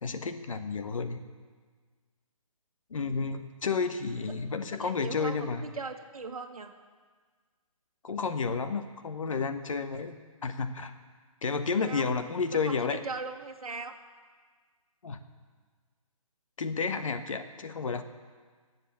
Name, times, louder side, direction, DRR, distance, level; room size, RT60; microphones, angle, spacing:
voice 1, 0.0-1.2 2.9-5.7 8.0-10.9 11.4-13.0 15.0-15.2 16.6-18.0, left 5 dB, 65° left, 8 dB, 1.3 m, -31 dB
voice 2, 4.8-6.7 11.8-12.1 12.5-13.9, right 4 dB, 85° right, 3 dB, 1.4 m, -39 dB
20.0 x 7.5 x 7.1 m, 1.5 s
hypercardioid pair, 160°, 18 cm